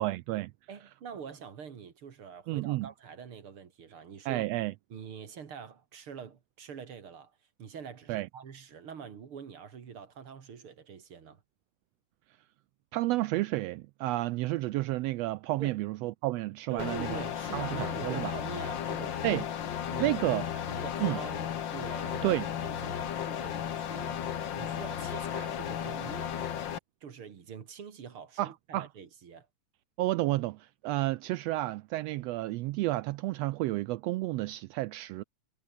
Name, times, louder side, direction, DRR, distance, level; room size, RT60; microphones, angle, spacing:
voice 1, 0.0-0.5 2.5-2.9 4.2-4.7 8.1-8.3 12.9-17.2 17.5-18.3 19.2-19.4 20.0-20.4 21.0-21.2 22.2-22.5 28.4-28.9 30.0-35.2, right 18 dB, 90° right, 1.4 m, -31 dB
voice 2, 0.7-4.4 4.9-7.3 7.6-11.4 15.6-15.8 16.7-19.4 19.9-20.2 20.5-22.4 22.6-26.5 27.0-29.5, right 7 dB, 50° right, 2.7 m, -45 dB
sound 1, 16.8-26.8, left 9 dB, 55° left, 1.4 m, -34 dB
omnidirectional pair, 3.5 m